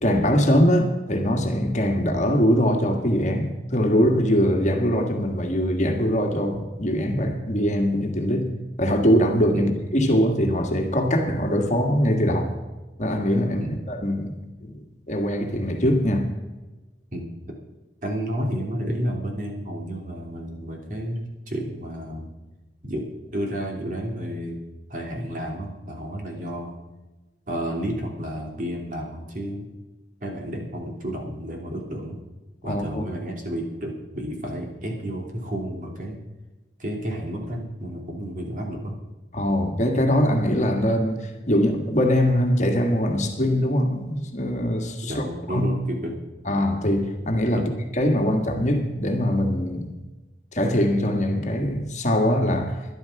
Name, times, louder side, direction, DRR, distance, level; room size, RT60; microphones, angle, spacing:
voice 1, 0.0-12.5 13.0-16.3 32.6-33.0 39.3-45.7 46.4-50.0 50.5-52.8, equal, 40° left, 1.7 m, -22 dB
voice 2, 18.0-21.2 21.5-22.3 22.8-24.6 24.9-26.8 27.5-29.6 30.2-32.2 32.6-36.2 36.8-39.0 45.0-46.1 47.5-47.6, equal, 50° right, 2.9 m, -31 dB
12.0 x 11.5 x 5.9 m
head